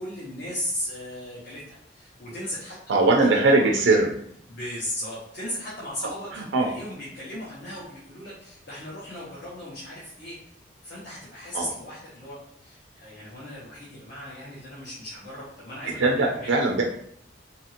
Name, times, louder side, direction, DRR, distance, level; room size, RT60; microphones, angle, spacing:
voice 1, 0.0-3.7 4.5-10.4 10.8-16.5, left 1 dB, 60° left, -8 dB, 0.9 m, -37 dB
voice 2, 2.9-4.1 6.3-6.7 11.5-11.7 16.0-16.8, right 2 dB, 90° right, 1 dB, 0.4 m, -20 dB
2.8 x 2.5 x 2.8 m, 0.68 s
head